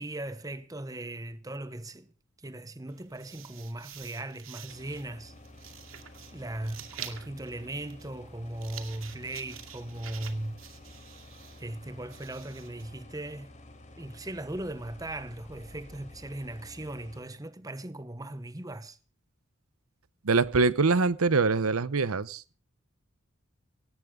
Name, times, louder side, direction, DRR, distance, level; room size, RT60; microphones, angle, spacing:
voice 1, 0.0-2.1 2.4-5.3 6.3-10.6 11.6-13.5 14.0-19.0, right 1 dB, 15° right, 1.0 m, -38 dB
sound 1, 2.9-12.8, right 10 dB, 70° right, 2.3 m, -48 dB
sound 2, 4.7-17.2, left 1 dB, 35° left, 3.8 m, -51 dB
voice 2, 20.2-22.4, right 4 dB, 85° right, 0.8 m, -24 dB
18.0 x 16.0 x 3.7 m
head